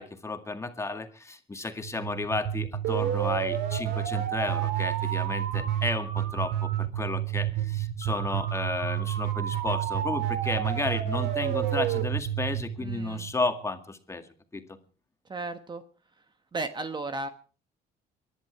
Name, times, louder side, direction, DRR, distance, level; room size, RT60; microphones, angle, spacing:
voice 1, 0.0-14.2 14.5-14.6, left 3 dB, 15° left, 6 dB, 2.1 m, -33 dB
sound 1, 1.8-13.6, right 11 dB, 75° right, 2.6 m, -29 dB
voice 2, 12.8-13.3 15.3-15.8 16.5-17.3, right 3 dB, 25° right, 9 dB, 1.1 m, -34 dB
23.5 x 11.0 x 4.6 m, 0.38 s
cardioid pair, 110°, 17 cm